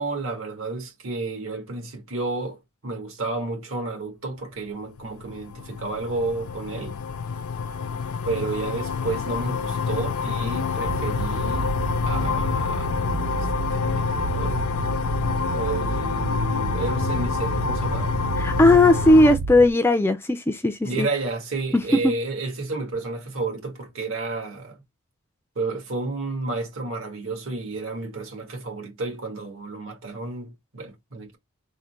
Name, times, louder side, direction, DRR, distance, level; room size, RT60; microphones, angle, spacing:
voice 1, 0.0-7.0 8.2-11.7 12.0-14.7 15.5-18.1 20.8-24.8 25.5-31.4, right 3 dB, 70° right, 1.4 m, -31 dB
sound 1, 5.0-19.4, left 5 dB, 80° left, 0.4 m, -27 dB
sound 2, 10.8-19.7, right 4 dB, 90° right, 0.5 m, -30 dB
voice 2, 18.4-21.1 21.7-22.1, left 2 dB, 10° left, 0.3 m, -17 dB
3.7 x 2.1 x 4.4 m
head